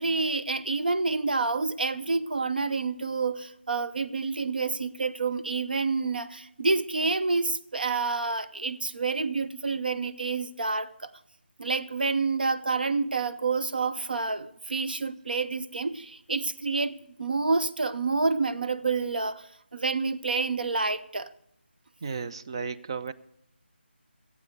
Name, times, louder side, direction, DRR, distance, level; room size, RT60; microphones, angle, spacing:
voice 1, 0.0-11.1 11.6-19.5 19.7-21.3, right 4 dB, 55° right, 12 dB, 0.7 m, -28 dB
voice 2, 22.0-23.1, right 5 dB, 25° right, 11 dB, 0.4 m, -34 dB
14.5 x 8.4 x 6.7 m, 0.78 s
figure-of-eight pair, 160°, 6 cm